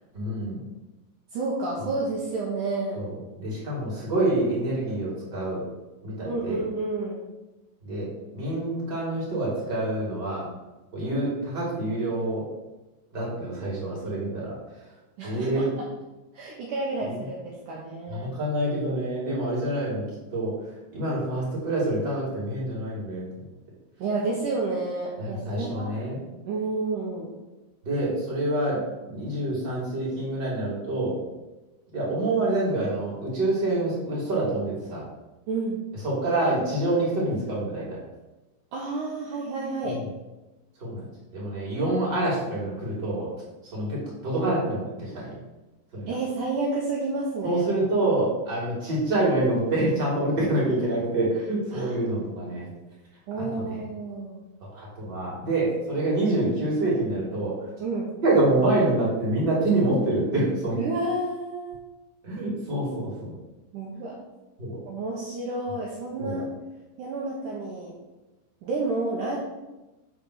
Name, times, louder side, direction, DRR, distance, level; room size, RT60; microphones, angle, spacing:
voice 1, 0.1-0.6 1.8-1.9 2.9-3.1 3.4-5.6 6.0-6.6 7.8-10.5 10.9-12.4 13.1-14.6 15.2-15.7 17.1-17.2 18.1-20.0 20.3-20.5 20.9-23.4 25.2-26.2 27.8-31.2 31.9-35.0 36.0-38.0 39.8-40.0 40.8-41.0 41.3-43.3 43.7-45.3 45.9-46.1 47.4-52.7 53.4-53.8 54.6-57.5 58.2-60.8 62.2-63.3 64.6-64.8 66.2-66.4, right 2 dB, 30° right, -5 dB, 3.3 m, -26 dB
voice 2, 1.3-3.0 6.2-7.2 15.2-15.9 16.3-18.3 24.0-25.9 26.5-27.3 35.5-35.8 38.7-40.0 46.1-47.6 51.7-51.9 53.3-54.4 57.8-58.1 60.8-61.8 63.7-64.2 64.9-66.4 67.0-67.9 68.6-69.4, right 3 dB, 70° right, -4 dB, 2.5 m, -30 dB
5.9 x 5.4 x 6.5 m, 1.1 s
omnidirectional pair, 4.1 m